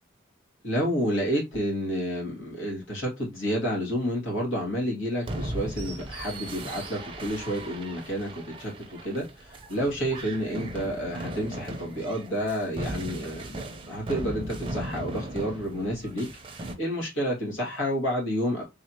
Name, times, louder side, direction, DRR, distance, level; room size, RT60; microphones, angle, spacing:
voice 1, 0.6-13.6 13.9-16.3 16.5-18.6, equal, 80° left, -2 dB, 2.2 m, -30 dB
sound 1, 5.2-16.7, right 1 dB, 25° right, 0.5 m, -37 dB
3.6 x 3.3 x 2.8 m, 0.22 s
head